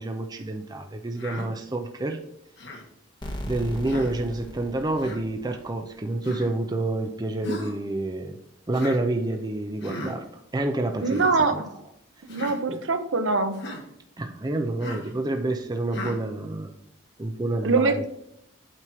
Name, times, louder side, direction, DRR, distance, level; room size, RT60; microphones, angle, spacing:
voice 1, 0.0-2.2 3.4-8.4 8.7-10.3 10.5-11.6 12.3-12.8 14.2-16.7 17.2-18.1, right 2 dB, 20° right, 4 dB, 0.5 m, -28 dB
Human voice, 1.2-1.5 2.6-2.9 3.8-4.1 5.0-5.2 6.2-6.5 7.4-7.8 8.7-9.0 9.8-10.1 11.0-11.3 12.3-12.6 13.5-13.8 14.8-15.1 15.9-16.2, left 1 dB, 60° left, 1.6 m, -36 dB
sound 1, 3.2-5.9, equal, 25° left, 1.1 m, -38 dB
voice 2, 11.0-11.7 12.3-13.6 17.6-18.1, right 3 dB, 70° right, 8 dB, 0.8 m, -23 dB
8.8 x 3.1 x 6.2 m, 0.75 s
head